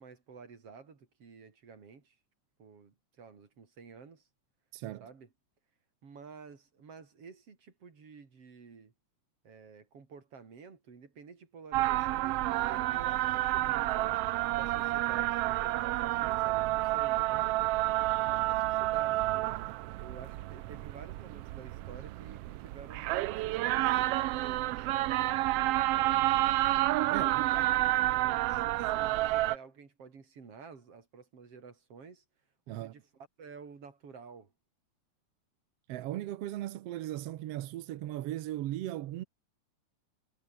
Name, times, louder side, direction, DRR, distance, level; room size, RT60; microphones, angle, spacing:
voice 1, 0.0-2.2 2.6-4.3 5.0-5.3 6.0-8.9 9.4-14.2 14.5-17.5 18.2-19.6 20.0-24.7 25.4-26.7 27.0-32.2 32.7-34.5, right 5 dB, 50° right, 4.5 m, -51 dB
voice 2, 4.7-5.1 27.1-27.4 32.7-32.9 35.9-39.2, right 14 dB, 70° right, 1.6 m, -37 dB
sound 1, 11.7-29.6, right 16 dB, 85° right, 1.3 m, -30 dB
omnidirectional pair, 3.5 m